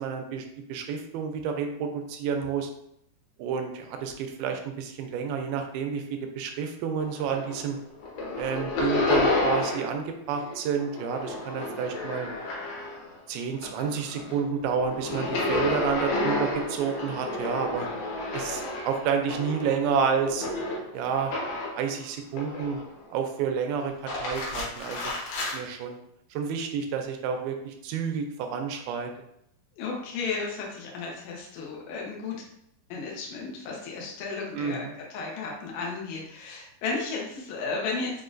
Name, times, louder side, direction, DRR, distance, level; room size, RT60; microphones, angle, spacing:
voice 1, 0.0-2.7 3.4-7.8 8.4-12.3 13.3-17.9 18.3-20.5 20.9-21.3 21.7-22.8 23.1-25.1 25.4-26.0 26.3-29.1 34.6-34.9, right 6 dB, 80° right, 4 dB, 2.2 m, -30 dB
sound 1, 7.0-7.7 8.0-10.0 10.3-13.2 13.5-21.9 22.3-23.0 23.9-25.6, left 2 dB, 70° left, 2.7 m, -31 dB
voice 2, 29.7-32.4 32.9-38.2, left 4 dB, 90° left, -2 dB, 1.5 m, -34 dB
7.0 x 2.5 x 2.5 m, 0.76 s
omnidirectional pair, 4.6 m